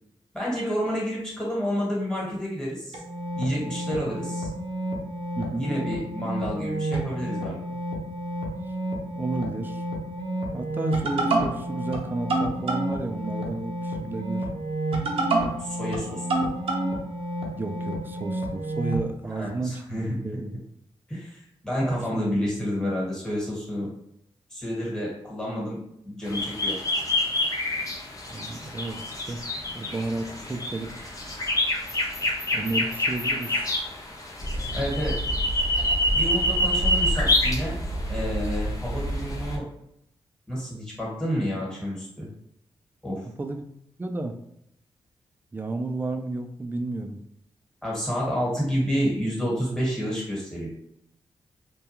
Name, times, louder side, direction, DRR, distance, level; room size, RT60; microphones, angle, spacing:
voice 1, 0.3-3.0 3.3-4.5 5.5-7.6 15.6-16.2 19.3-20.3 21.1-23.9 24.5-25.8 26.0-26.7 34.7-35.2 36.1-37.8 38.1-39.6 40.5-42.3 43.0-43.3 47.8-50.7, equal, 5° left, -6 dB, 1.3 m, -29 dB
sound 1, 2.9-19.0, right 2 dB, 70° right, 0.6 m, -29 dB
voice 2, 5.4-5.7 9.1-9.8 10.5-14.5 17.6-20.5 21.9-22.2 28.3-29.4 29.7-31.0 32.5-33.6 43.4-43.6 44.0-44.4 45.5-47.2, right 2 dB, 20° right, 5 dB, 0.3 m, -32 dB
sound 2, 26.2-39.6, left 1 dB, 35° left, 0.6 m, -27 dB
2.2 x 2.2 x 2.9 m, 0.75 s
cardioid pair, 70°, 10 cm